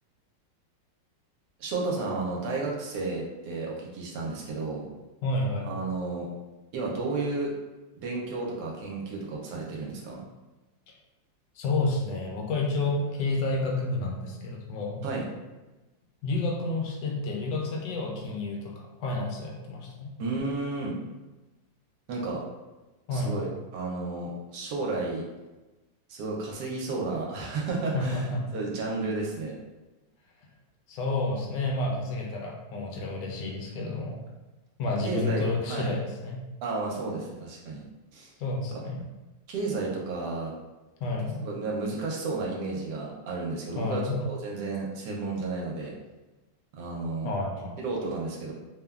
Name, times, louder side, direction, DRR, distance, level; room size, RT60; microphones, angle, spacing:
voice 1, 1.6-4.8 5.6-6.3 6.7-7.5 8.0-10.2 15.0-15.3 20.2-21.0 22.1-22.4 23.1-25.2 26.1-28.2 28.5-29.6 35.0-35.9 36.6-37.8 38.1-38.3 38.7-38.8 39.5-40.5 41.4-45.9 46.7-47.3 47.8-48.5, right 3 dB, 75° right, -2 dB, 1.1 m, -32 dB
voice 2, 5.2-5.7 11.6-15.0 16.2-20.1 23.1-23.5 27.9-28.4 30.9-34.2 34.8-36.4 38.4-39.0 41.0-41.4 43.8-44.2 47.2-47.8, left 2 dB, 75° left, -1 dB, 1.2 m, -30 dB
3.2 x 2.1 x 2.3 m, 1.1 s
omnidirectional pair, 1.9 m